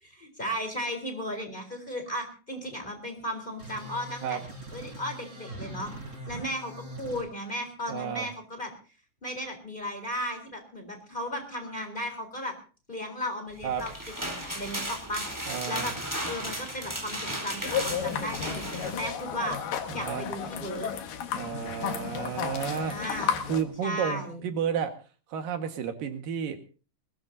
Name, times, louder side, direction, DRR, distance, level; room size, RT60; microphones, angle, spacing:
voice 1, 0.0-5.9 6.3-8.7 9.2-12.5 12.9-13.9 14.2-15.9 16.2-19.6 19.9-20.9 22.8-23.3 23.8-24.4, equal, 15° left, 5 dB, 3.9 m, -35 dB
sound 1, 3.6-7.2, right 1 dB, 20° right, 4.6 m, -42 dB
voice 2, 7.9-8.3 13.6-13.8 15.5-15.9 19.9-20.3 21.3-22.9 23.5-24.9 25.3-26.6, right 7 dB, 85° right, 6 dB, 3.4 m, -31 dB
sound 2, 13.6-19.0, equal, 5° right, 3.8 m, -35 dB
sound 3, 17.6-23.6, left 8 dB, 80° left, 3.2 m, -33 dB
21.0 x 19.0 x 2.8 m, 0.37 s
omnidirectional pair, 3.8 m